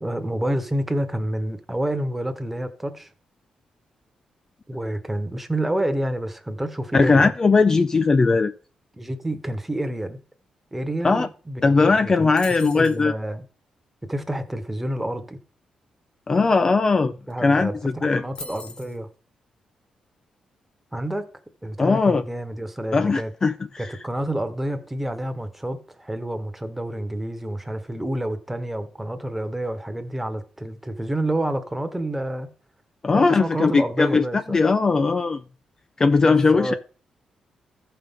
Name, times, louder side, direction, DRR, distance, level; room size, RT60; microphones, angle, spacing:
voice 1, 0.0-3.1 4.7-7.3 9.0-10.2 10.7-12.3 12.6-13.4 14.1-15.4 17.3-19.1 20.9-21.3 21.6-23.3 23.8-32.5 33.1-34.6 36.2-36.7, right 1 dB, 10° right, 1.1 m, -28 dB
voice 2, 6.9-8.5 11.0-11.3 11.6-13.1 16.3-17.1 17.4-18.2 21.8-22.2 22.9-23.9 33.0-35.4 36.0-36.7, left 4 dB, 30° left, 0.4 m, -19 dB
sound 1, 12.4-13.0 17.0-17.1 17.3-17.6 18.3-19.0, left 3 dB, 45° left, 1.1 m, -40 dB
14.5 x 5.7 x 3.6 m
cardioid pair, 105°, 2 cm